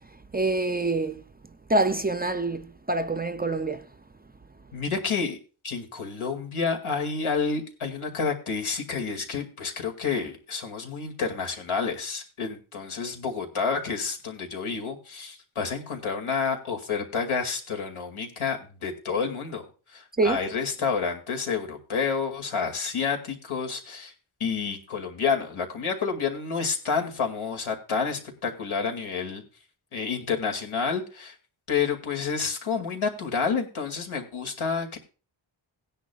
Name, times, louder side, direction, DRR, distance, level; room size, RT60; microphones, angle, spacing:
voice 1, 0.3-1.2 1.7-3.8 20.2-20.4, right 2 dB, 20° right, 0.4 m, -25 dB
voice 2, 4.7-5.4 5.6-19.6 19.9-24.1 24.4-29.4 29.9-31.3 31.7-35.0, left 5 dB, 85° left, 2.4 m, -29 dB
17.0 x 10.0 x 2.3 m
wide cardioid pair, 175°, 48 cm